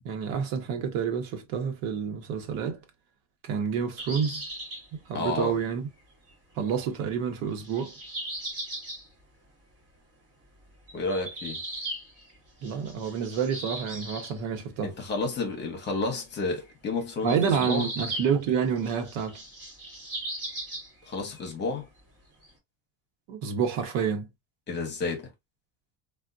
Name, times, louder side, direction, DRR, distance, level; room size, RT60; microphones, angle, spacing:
voice 1, 0.0-2.8 3.4-4.4 5.1-5.8 6.6-7.9 12.6-14.9 17.2-19.4 23.3-24.3, right 7 dB, 85° right, 1.1 m, -28 dB
sound 1, 4.0-4.8 6.3-6.4 7.5-9.1 10.9-12.3 12.6-14.4 16.7-16.8 17.2-18.5 18.7-21.1 21.4-21.5 22.4-22.5, right 1 dB, 35° right, 2.3 m, -37 dB
voice 2, 5.1-5.6 10.9-11.6 14.8-17.9 21.1-21.9 24.7-25.3, left 3 dB, 20° left, 0.9 m, -31 dB
3.5 x 2.5 x 2.5 m
cardioid pair, 170°, 49 cm